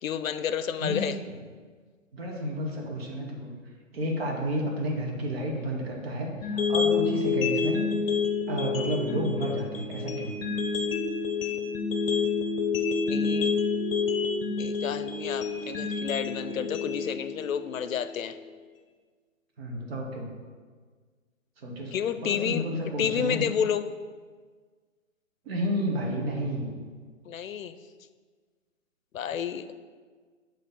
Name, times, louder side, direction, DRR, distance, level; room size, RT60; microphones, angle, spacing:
voice 1, 0.0-1.2 13.1-13.5 14.6-18.4 21.9-22.6 23.0-23.9 27.3-27.8 29.1-29.8, left 8 dB, 85° left, 12 dB, 0.5 m, -30 dB
voice 2, 0.8-1.3 2.1-3.5 3.9-7.8 8.5-10.3 19.6-20.3 21.6-21.9 22.2-23.4 25.4-26.7, equal, 50° right, 0 dB, 1.2 m, -31 dB
sound 1, 6.4-18.4, left 5 dB, 45° left, 0.8 m, -28 dB
6.7 x 3.2 x 5.2 m, 1.5 s
hypercardioid pair, 145°, 39 cm